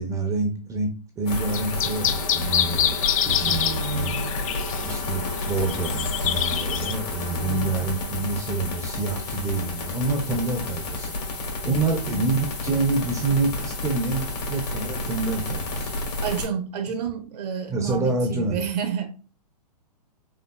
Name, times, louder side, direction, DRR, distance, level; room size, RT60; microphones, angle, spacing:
voice 1, 0.0-3.0 3.2-4.1 4.8-15.9 17.7-18.6, right 3 dB, 15° right, 0.5 m, -27 dB
sound 1, 1.3-16.5, left 2 dB, 70° left, 1.7 m, -30 dB
sound 2, 1.5-4.9 5.4-5.5 5.7-6.9, left 10 dB, 55° left, 0.4 m, -26 dB
voice 2, 3.4-4.4 7.3-7.8 11.6-12.2 16.2-19.1, right 7 dB, 70° right, 0.8 m, -30 dB
5.5 x 2.2 x 2.2 m
hypercardioid pair, 125°, 21 cm